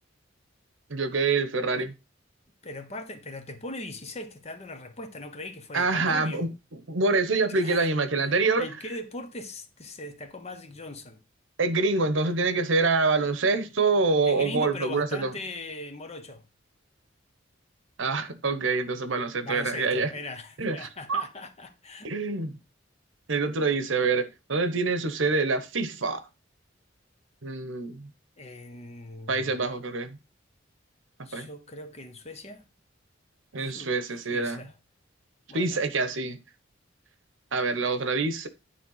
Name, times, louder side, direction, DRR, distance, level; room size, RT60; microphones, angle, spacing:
voice 1, 0.9-1.9 5.7-6.5 6.9-8.7 11.6-15.3 18.0-20.1 20.6-21.2 22.0-22.6 23.3-26.2 27.4-28.1 29.3-30.2 31.3-31.5 33.5-34.6 35.5-36.4 37.5-38.5, right 3 dB, 80° right, 1.0 m, -26 dB
voice 2, 2.6-6.5 7.5-7.9 8.3-11.2 14.2-16.5 19.4-22.1 28.4-29.6 31.2-32.7 33.6-33.9 34.3-34.7 35.5-35.8, left 2 dB, 35° left, 1.0 m, -40 dB
9.7 x 3.4 x 5.6 m
head